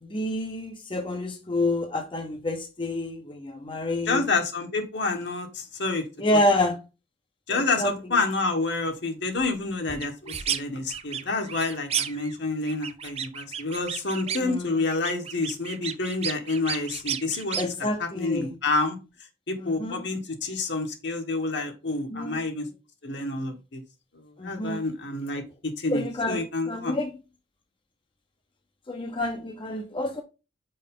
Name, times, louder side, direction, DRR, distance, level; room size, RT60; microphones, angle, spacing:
voice 1, 0.0-4.2 6.2-6.8 7.5-7.9 14.3-14.8 17.6-18.6 19.6-20.0 22.1-22.4 24.4-24.8 25.9-27.1 28.9-30.2, left 1 dB, 25° left, 0.7 m, -28 dB
voice 2, 4.1-6.0 7.5-17.6 18.0-19.0 19.5-22.7 23.0-23.8 24.4-27.0, left 3 dB, 60° left, 1.4 m, -28 dB
sound 1, 10.0-10.6 10.9-12.3 12.6-14.5 14.9-17.6, right 8 dB, 30° right, 0.5 m, -32 dB
5.4 x 4.7 x 3.8 m
head